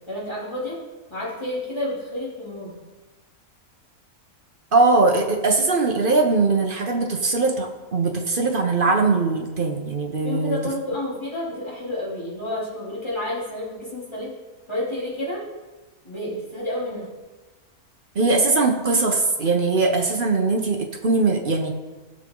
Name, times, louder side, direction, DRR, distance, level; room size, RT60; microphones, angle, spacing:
voice 1, 0.1-0.8 1.1-2.7 10.2-14.3 14.7-15.5 16.0-17.1, left 1 dB, 20° left, -7 dB, 3.1 m, -30 dB
voice 2, 4.7-10.6 18.1-21.7, right 3 dB, 40° right, 3 dB, 1.0 m, -21 dB
15.0 x 6.4 x 3.8 m, 1.2 s
omnidirectional pair, 1.6 m